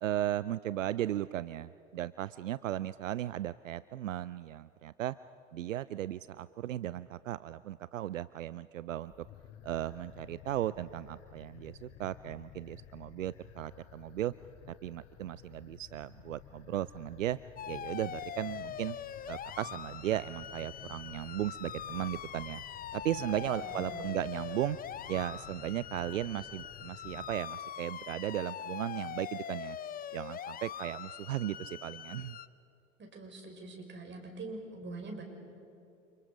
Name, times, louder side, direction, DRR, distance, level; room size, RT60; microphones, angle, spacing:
voice 1, 0.0-5.2 5.5-9.1 9.6-14.3 14.7-17.4 17.7-19.0 19.3-22.6 22.9-24.8 25.1-29.8 30.1-32.4, right 13 dB, 80° right, 17 dB, 0.5 m, -36 dB
sound 1, 9.0-27.4, left 11 dB, 40° left, 1.3 m, -54 dB
sound 2, 17.6-32.5, left 9 dB, 25° left, 0.7 m, -43 dB
voice 2, 23.6-24.1 33.0-35.2, right 3 dB, 30° right, 2 dB, 6.0 m, -44 dB
29.5 x 27.5 x 5.2 m, 2.7 s
figure-of-eight pair, 80°, 38 cm